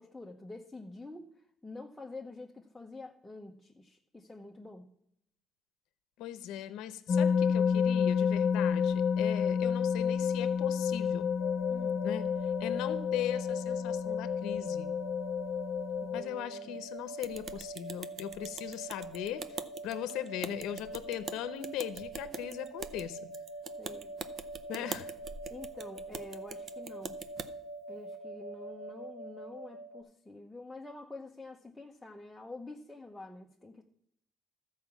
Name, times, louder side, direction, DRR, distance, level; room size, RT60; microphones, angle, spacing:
voice 1, 0.0-4.9 11.7-12.0 16.0-16.8 23.8-24.1 24.6-24.9 25.5-27.2 27.9-33.8, left 2 dB, 5° left, 0 dB, 0.8 m, -47 dB
voice 2, 6.2-11.3 12.0-14.9 16.1-23.2 24.7-25.0, left 11 dB, 80° left, 12 dB, 0.7 m, -39 dB
sound 1, 7.1-16.2, left 7 dB, 45° left, 0.5 m, -30 dB
sound 2, 11.4-30.0, right 2 dB, 80° right, 2.0 m, -44 dB
sound 3, 17.2-27.5, right 5 dB, 45° right, 0.6 m, -44 dB
13.5 x 4.8 x 7.0 m, 0.71 s
cardioid pair, 125°, 0 cm